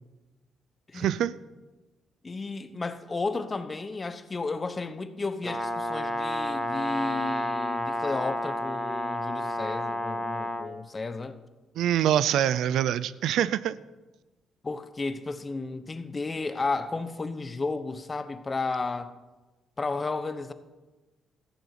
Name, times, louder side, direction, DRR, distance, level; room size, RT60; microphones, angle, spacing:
voice 1, 0.9-1.3 11.8-13.8, right 11 dB, 80° right, 0.4 m, -25 dB
voice 2, 2.2-11.4 14.6-19.1 19.8-20.5, left 3 dB, 25° left, 0.9 m, -33 dB
Brass instrument, 5.4-10.7, left 1 dB, 5° right, 1.4 m, -30 dB
14.0 x 10.0 x 5.8 m
cardioid pair, 90°, 0 cm